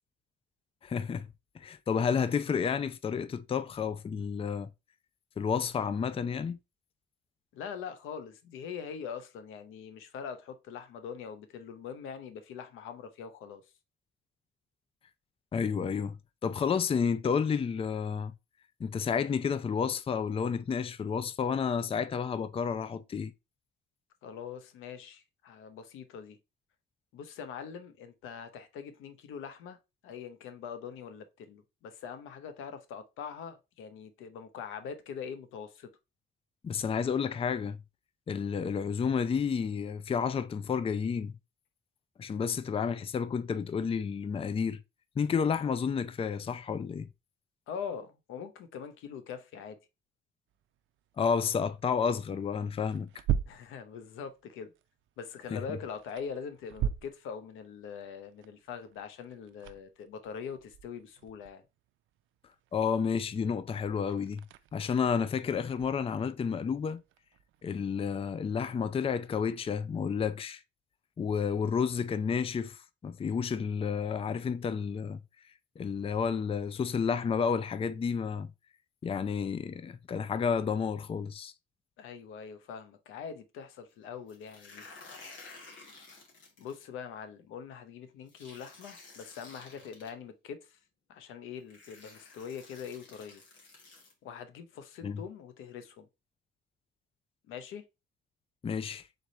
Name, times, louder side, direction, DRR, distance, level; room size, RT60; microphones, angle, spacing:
voice 1, 0.8-1.3 1.5-4.7 5.4-6.6 15.5-18.3 18.8-23.3 36.6-37.8 38.3-41.3 42.2-44.8 45.2-47.1 51.2-53.2 55.5-55.8 62.7-64.4 64.7-67.0 67.6-70.6 71.2-75.2 75.8-78.5 79.0-81.5 95.0-95.2 98.6-99.1, left 6 dB, 30° left, 0.4 m, -31 dB
voice 2, 7.5-13.6 24.2-26.4 27.1-29.8 30.0-35.9 47.7-49.8 53.5-54.7 55.2-61.6 82.0-84.9 86.6-90.8 91.1-93.4 94.2-96.1 97.5-97.8, left 7 dB, 90° left, 0.8 m, -43 dB
sound 1, 50.5-67.8, right 10 dB, 80° right, 0.4 m, -41 dB
sound 2, 84.3-86.8 88.3-90.1 91.1-91.2 91.7-94.1, left 3 dB, 70° left, 2.2 m, -52 dB
3.9 x 3.3 x 4.0 m
cardioid pair, 90°, 20 cm